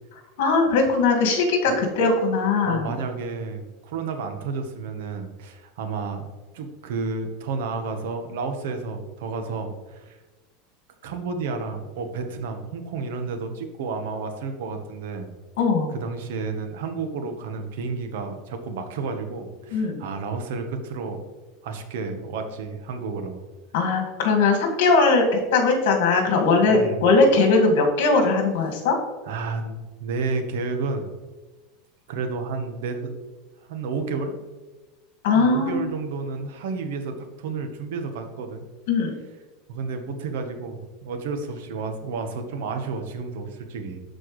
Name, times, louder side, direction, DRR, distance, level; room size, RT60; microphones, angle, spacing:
voice 1, 0.4-2.9 15.6-15.9 19.7-20.0 23.7-29.0 35.2-35.9 38.9-39.1, left 3 dB, 70° left, 2 dB, 1.9 m, -20 dB
voice 2, 2.6-6.3 6.5-10.2 11.0-15.3 15.9-21.2 21.6-23.4 26.7-27.0 29.2-31.1 32.1-33.1 33.6-34.4 35.3-38.6 39.7-44.0, right 4 dB, 75° right, 7 dB, 1.1 m, -31 dB
12.5 x 4.5 x 3.2 m, 1.2 s
supercardioid pair, 165°, 0 cm